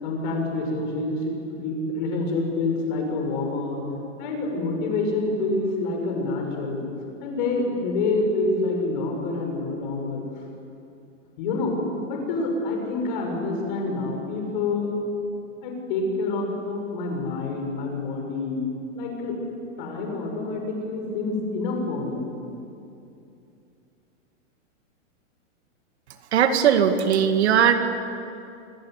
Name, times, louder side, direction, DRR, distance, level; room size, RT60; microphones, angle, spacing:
voice 1, 0.0-3.8 4.2-6.8 7.2-10.2 11.4-11.8 12.1-14.9 15.6-18.6 18.9-19.4 19.8-22.2, left 3 dB, 40° left, 1 dB, 6.8 m, -27 dB
voice 2, 26.3-27.7, right 8 dB, 60° right, 7 dB, 2.2 m, -19 dB
26.5 x 25.0 x 8.4 m, 2.7 s
supercardioid pair, 175°, 37 cm